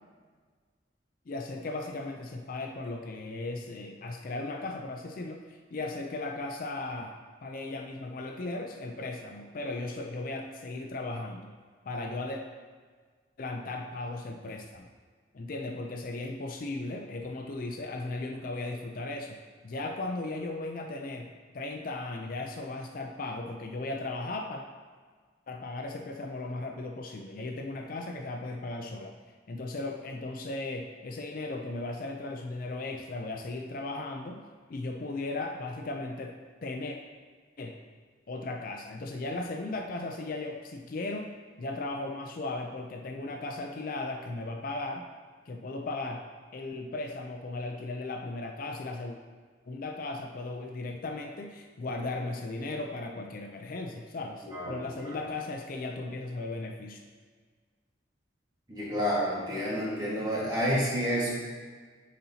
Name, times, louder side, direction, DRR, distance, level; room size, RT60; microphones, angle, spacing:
voice 1, 1.3-7.1 7.4-11.5 11.9-12.4 13.4-14.9 15.3-19.4 19.6-21.3 21.5-24.6 25.5-29.1 29.5-34.4 34.7-37.0 37.6-37.8 38.3-45.0 45.5-46.2 46.5-49.2 49.7-57.0, left 2 dB, 45° left, 3 dB, 0.4 m, -36 dB
voice 2, 54.5-55.2 58.7-61.4, equal, 20° right, -7 dB, 1.5 m, -30 dB
9.3 x 4.2 x 2.8 m, 1.5 s
head